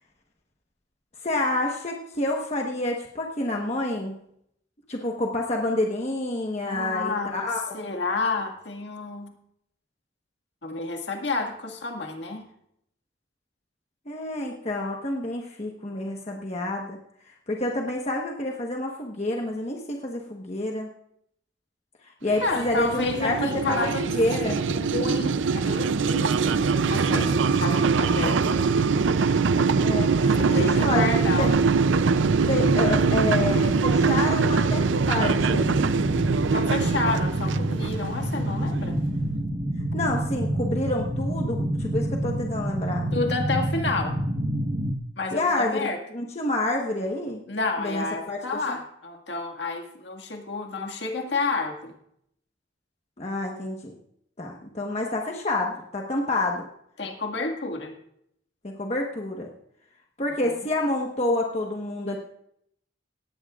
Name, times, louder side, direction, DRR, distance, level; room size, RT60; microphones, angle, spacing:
voice 1, 1.2-4.1 4.9-7.8 14.1-17.0 17.5-20.9 22.2-24.6 29.8-31.0 31.4-31.5 32.5-35.9 39.9-43.1 45.3-47.4 47.8-48.4 48.7-48.8 53.2-53.9 54.4-56.6 58.6-59.5 60.2-62.2, left 1 dB, 35° left, 0 dB, 1.2 m, -28 dB
voice 2, 6.7-9.3 10.6-12.5 22.4-24.1 24.4-28.7 30.2-31.5 36.5-39.0 43.1-44.2 45.2-46.0 47.5-51.9 57.0-58.0 60.4-60.5, left 3 dB, 60° left, 3 dB, 1.9 m, -30 dB
sound 1, 22.3-39.0, right 5 dB, 75° right, 0.5 m, -23 dB
sound 2, 30.8-44.9, right 1 dB, 40° right, 1.2 m, -29 dB
18.5 x 15.5 x 2.4 m, 0.73 s
head